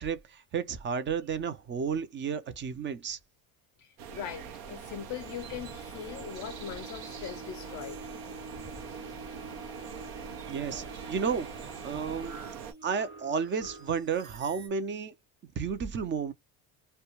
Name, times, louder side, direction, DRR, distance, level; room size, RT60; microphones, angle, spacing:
voice 1, 0.0-3.2 10.5-11.5 11.8-12.4 12.8-15.1 15.6-16.3, right 6 dB, 30° right, 0.5 m, -32 dB
voice 2, 3.8-8.0, left 9 dB, 45° left, 0.5 m, -41 dB
sound 1, 4.0-12.7, right 7 dB, 80° right, 0.7 m, -43 dB
sound 2, 5.1-14.7, right 2 dB, 45° right, 1.1 m, -47 dB
2.2 x 2.2 x 2.9 m
supercardioid pair, 110°, 39 cm